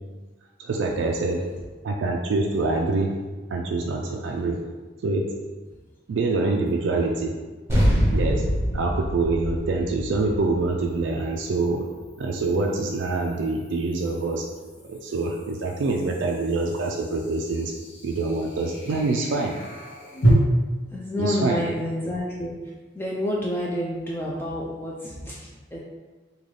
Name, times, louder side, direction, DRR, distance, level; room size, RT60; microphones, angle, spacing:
voice 1, 0.6-1.4 1.8-3.1 3.5-4.6 5.0-5.3 6.1-7.3 8.1-8.4 8.7-11.9 12.2-14.4 14.8-17.7 18.0-19.5 21.2-21.6, right 3 dB, 70° right, 1 dB, 0.3 m, -25 dB
sound 1, 6.7-6.8 10.2-20.3, right 2 dB, 75° left, 1.3 m, -33 dB
sound 2, 7.7-12.5, equal, 15° right, 0.9 m, -25 dB
voice 2, 20.9-22.6 22.9-25.8, left 1 dB, 10° left, -4 dB, 0.3 m, -29 dB
3.8 x 2.3 x 3.2 m, 1.3 s
head